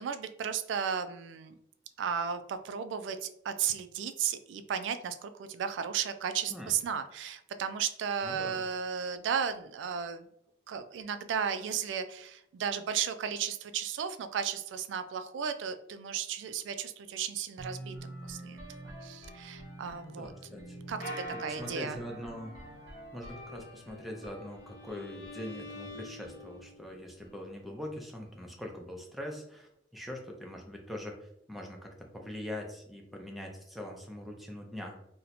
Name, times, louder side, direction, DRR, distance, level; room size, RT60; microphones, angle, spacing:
voice 1, 0.0-1.5 2.0-10.3 10.7-18.6 19.0-20.3 20.9-22.0, right 7 dB, 85° right, 10 dB, 0.3 m, -34 dB
voice 2, 8.2-8.6 19.8-20.8 21.4-22.6 23.1-35.0, left 1 dB, ahead, 0 dB, 0.5 m, -42 dB
sound 1, 17.6-27.4, equal, 25° right, 1.1 m, -48 dB
sound 2, 21.0-23.7, right 1 dB, 50° left, 1.0 m, -44 dB
Bowed string instrument, 23.8-26.9, left 2 dB, 75° left, 0.5 m, -49 dB
2.8 x 2.1 x 4.0 m, 0.76 s
head